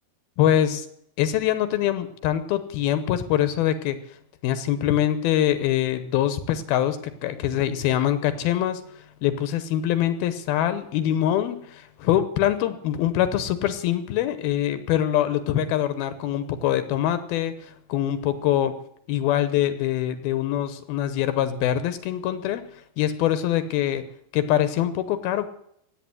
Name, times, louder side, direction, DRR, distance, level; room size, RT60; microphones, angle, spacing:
voice 1, 0.4-0.9 1.2-4.0 4.4-8.8 9.2-18.8 19.1-22.6 23.0-24.1 24.3-25.5, left 11 dB, 80° left, 12 dB, 2.7 m, -24 dB
16.0 x 9.6 x 9.6 m, 0.73 s
omnidirectional pair, 4.5 m